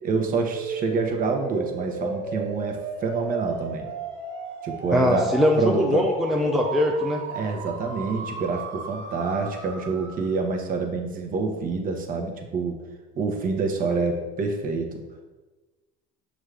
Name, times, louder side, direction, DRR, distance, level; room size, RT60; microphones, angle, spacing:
voice 1, 0.0-3.9 4.6-6.1 7.3-12.8 13.2-15.0, right 4 dB, 45° right, 3 dB, 0.8 m, -27 dB
sound 1, 0.5-10.4, right 5 dB, 65° right, 0.8 m, -35 dB
voice 2, 4.9-7.2, left 1 dB, ahead, 1 dB, 0.4 m, -22 dB
6.1 x 2.5 x 3.3 m, 1.2 s
supercardioid pair, 90°, 20 cm